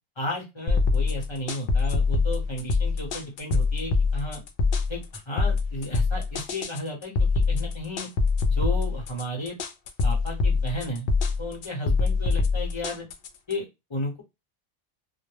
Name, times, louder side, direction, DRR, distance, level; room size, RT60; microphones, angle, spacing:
voice 1, 0.2-4.4 4.9-8.1 8.5-9.6 10.0-11.1 11.4-13.0 13.5-14.2, left 1 dB, 25° left, -2 dB, 0.9 m, -33 dB
sound 1, 0.7-13.5, left 4 dB, 60° left, 0.5 m, -24 dB
2.3 x 2.1 x 3.2 m, 0.22 s
omnidirectional pair, 1.2 m